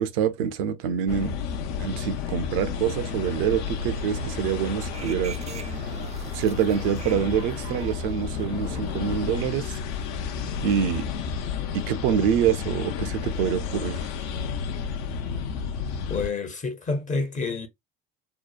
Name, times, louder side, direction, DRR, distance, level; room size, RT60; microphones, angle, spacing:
voice 1, 0.0-1.3 1.8-5.9 6.2-9.8 10.6-11.1 11.7-14.1, right 8 dB, 75° right, 0.5 m, -26 dB
sound 1, 1.1-16.3, left 6 dB, 65° left, 0.5 m, -31 dB
sound 2, 3.1-9.5, right 6 dB, 25° right, 0.4 m, -44 dB
voice 2, 16.1-17.7, left 3 dB, 25° left, 0.6 m, -28 dB
2.8 x 2.1 x 2.3 m
hypercardioid pair, 60°, 29 cm